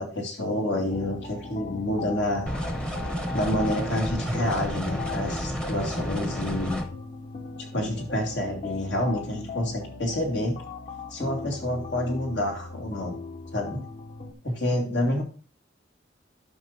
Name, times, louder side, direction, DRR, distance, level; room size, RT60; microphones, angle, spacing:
voice 1, 0.0-2.5 3.3-6.8 7.6-10.5 11.1-13.1 13.5-13.8 14.4-15.2, left 1 dB, 80° left, 0 dB, 2.4 m, -28 dB
sound 1, 0.9-14.3, left 4 dB, 40° left, 0.9 m, -39 dB
sound 2, 2.5-6.8, equal, 5° left, 0.7 m, -31 dB
11.5 x 5.8 x 2.6 m, 0.37 s
head